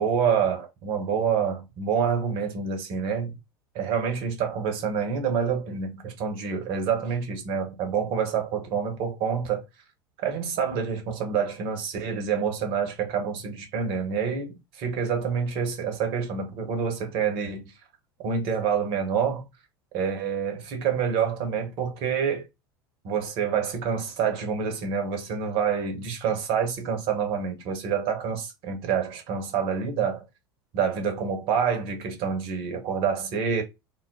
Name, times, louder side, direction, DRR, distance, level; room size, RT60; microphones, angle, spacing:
voice 1, 0.0-3.3 3.7-9.6 10.2-17.7 18.2-19.4 19.9-22.4 23.0-30.2 30.7-33.6, right 7 dB, 45° right, 0.9 m, -27 dB
2.3 x 2.0 x 3.5 m
figure-of-eight pair, 75°, 13 cm